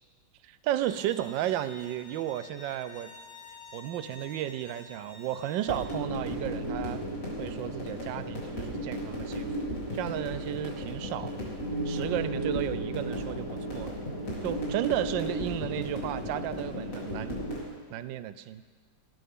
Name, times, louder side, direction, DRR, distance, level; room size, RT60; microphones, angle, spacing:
voice 1, 0.4-3.1 3.7-7.1 7.4-9.5 9.9-11.4 11.9-14.0 14.4-17.5 17.9-18.6, right 12 dB, 80° right, 13 dB, 1.3 m, -33 dB
Bowed string instrument, 0.8-5.8, left 4 dB, 80° left, 1.8 m, -50 dB
sound 1, 5.7-17.6, equal, 45° left, 3.4 m, -34 dB
15.5 x 12.5 x 3.7 m, 1.5 s
omnidirectional pair, 2.1 m